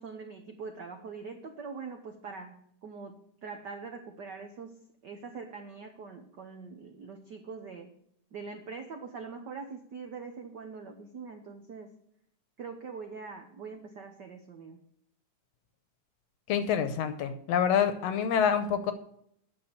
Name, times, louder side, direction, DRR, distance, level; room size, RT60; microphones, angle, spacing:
voice 1, 0.0-4.8 5.0-8.0 8.3-12.0 12.6-14.8, right 5 dB, 75° right, 4 dB, 0.9 m, -43 dB
voice 2, 16.5-18.9, left 8 dB, 70° left, 9 dB, 1.8 m, -27 dB
9.7 x 6.6 x 6.8 m, 0.70 s
omnidirectional pair, 3.4 m